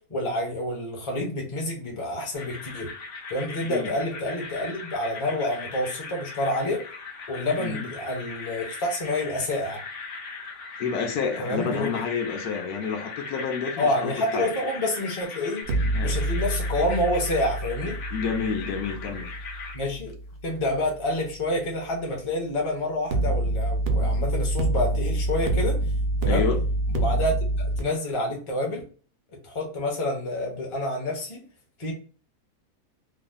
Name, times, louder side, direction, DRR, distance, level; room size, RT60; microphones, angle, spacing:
voice 1, 0.1-2.9 3.3-6.8 7.3-9.8 11.4-11.9 13.8-15.6 16.0-18.0 19.7-20.1 20.4-25.8 26.2-26.5 26.9-28.8 29.4-31.4 31.8-31.9, left 1 dB, 25° left, 0.7 m, -28 dB
sound 1, 2.3-19.8, left 4 dB, 60° left, 0.9 m, -39 dB
voice 2, 10.8-14.5 15.9-16.2 18.1-19.3 26.3-26.6, left 6 dB, 80° left, 1.2 m, -29 dB
sound 2, 15.6-20.7 23.1-27.8, right 1 dB, 90° right, 0.5 m, -26 dB
3.2 x 2.1 x 3.6 m
omnidirectional pair, 1.6 m